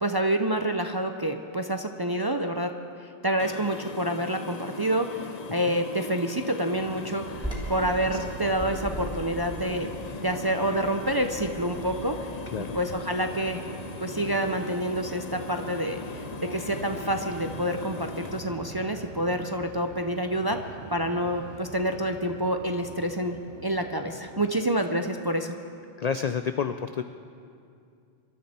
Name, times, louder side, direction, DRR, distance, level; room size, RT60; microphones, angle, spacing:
voice 1, 0.0-2.7 3.2-5.2 5.5-9.9 10.2-12.2 12.7-13.6 14.0-16.2 16.5-20.6 20.9-25.6, right 1 dB, 30° right, 5 dB, 0.4 m, -28 dB
sound 1, 3.4-18.4, left 4 dB, 40° left, 0.6 m, -39 dB
sound 2, 6.7-24.5, right 5 dB, 80° right, 1.2 m, -44 dB
Bird vocalization bird call bird song, 7.3-13.0, right 1 dB, 5° right, 3.0 m, -40 dB
voice 2, 7.8-8.2 12.5-12.8 26.0-27.0, left 7 dB, 75° left, 9 dB, 0.3 m, -30 dB
24.0 x 13.0 x 4.3 m, 2.4 s
omnidirectional pair, 1.2 m